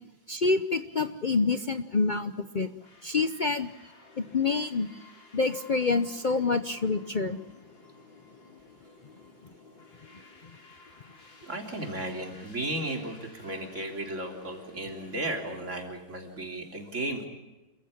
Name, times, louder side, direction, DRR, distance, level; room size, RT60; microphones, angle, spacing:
voice 1, 0.3-2.7 3.0-3.7 4.2-4.9 5.3-7.4, left 4 dB, 90° left, 10 dB, 0.4 m, -27 dB
sound 1, 2.8-15.6, left 3 dB, 75° left, 4.6 m, -54 dB
voice 2, 11.4-17.3, right 1 dB, 40° right, 3 dB, 3.9 m, -35 dB
28.0 x 15.0 x 8.5 m, 1.1 s
omnidirectional pair, 2.1 m